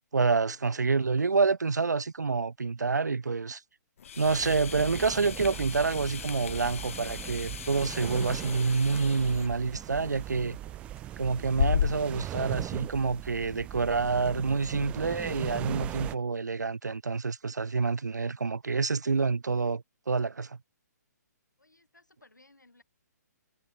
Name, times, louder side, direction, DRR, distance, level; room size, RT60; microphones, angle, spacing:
voice 1, 0.1-3.6 4.2-10.6 11.2-20.6, right 4 dB, 75° right, 0.7 m, -28 dB
sound 1, 4.0-12.2, left 8 dB, 50° left, 0.5 m, -36 dB
sound 2, 4.2-16.2, right 13 dB, 10° right, 0.3 m, -40 dB
sound 3, 5.0-13.0, right 12 dB, 40° right, 2.4 m, -59 dB
voice 2, 21.6-22.8, left 2 dB, 80° left, 6.0 m, -60 dB
figure-of-eight pair, 130°, 10 cm